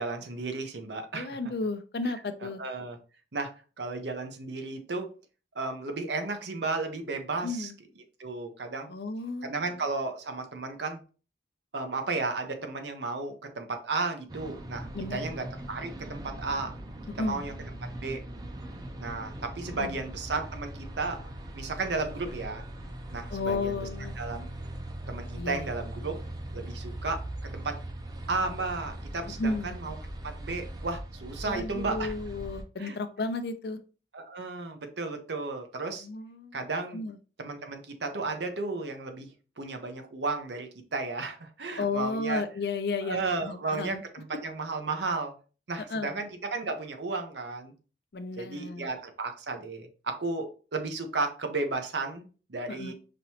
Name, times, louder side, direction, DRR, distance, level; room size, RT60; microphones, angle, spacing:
voice 1, 0.0-1.3 2.4-3.0 3.3-3.5 3.8-5.1 5.5-7.7 8.2-8.9 9.4-11.0 11.7-16.7 17.1-17.5 18.0-18.2 19.0-21.2 21.5-22.6 23.1-23.8 24.2-24.5 25.1-26.1 26.5-27.8 28.3-30.0 30.2-32.1 32.8-33.0 34.1-36.1 36.5-37.0 37.4-39.3 39.6-42.4 43.0-45.3 45.7-47.7 48.4-52.9, right 3 dB, 80° right, 5 dB, 0.8 m, -33 dB
voice 2, 1.1-2.6 7.4-7.7 8.9-9.5 14.9-15.3 17.1-17.4 19.7-19.9 23.3-24.2 25.4-25.7 29.4-29.8 31.4-33.8 36.0-36.7 36.9-37.2 41.8-44.0 45.9-46.2 48.1-48.9 52.7-52.9, left 3 dB, 65° left, 10 dB, 0.5 m, -33 dB
sound 1, 14.3-32.6, right 1 dB, 20° right, 0.5 m, -40 dB
5.2 x 3.0 x 2.8 m, 0.36 s
head